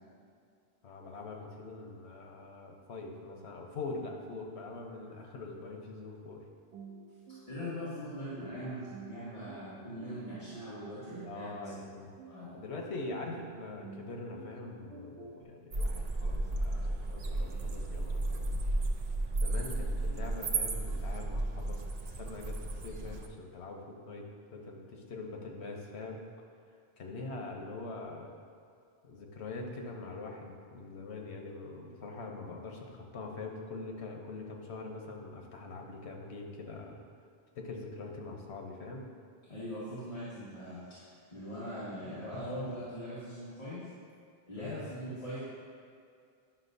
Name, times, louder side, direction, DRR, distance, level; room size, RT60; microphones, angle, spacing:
voice 1, 0.8-6.4 11.2-12.1 12.5-18.6 19.4-21.8 22.2-26.2 27.0-28.3 29.0-37.0 37.5-39.0 44.6-44.8, left 3 dB, 90° left, 1 dB, 1.1 m, -43 dB
sound 1, 6.7-15.4, right 4 dB, 90° right, 1.0 m, -50 dB
voice 2, 7.5-11.6 12.3-12.5 39.5-41.0 41.3-43.8 44.5-45.4, equal, 35° left, -13 dB, 1.6 m, -41 dB
sound 2, 15.7-23.3, right 2 dB, 50° right, 0.5 m, -33 dB
9.9 x 5.9 x 2.6 m, 2.3 s
omnidirectional pair, 1.1 m